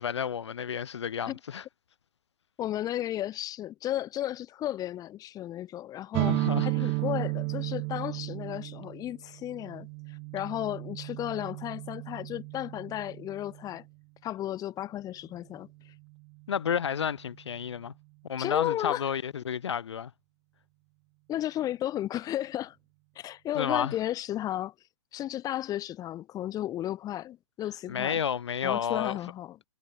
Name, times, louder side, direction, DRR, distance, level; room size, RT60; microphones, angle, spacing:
voice 1, 0.0-1.6 6.1-6.7 16.5-17.9 18.3-20.1 23.5-23.9 27.9-29.2, left 8 dB, 65° left, 3.4 m, -31 dB
voice 2, 2.6-6.3 6.6-13.8 14.2-15.9 18.4-19.1 21.3-22.8 23.1-24.7 25.1-28.2 28.6-29.6, left 13 dB, 25° left, 3.1 m, -34 dB
sound 1, 6.1-13.8, right 40 dB or more, 30° right, 0.5 m, -33 dB
figure-of-eight pair, 120°, 15 cm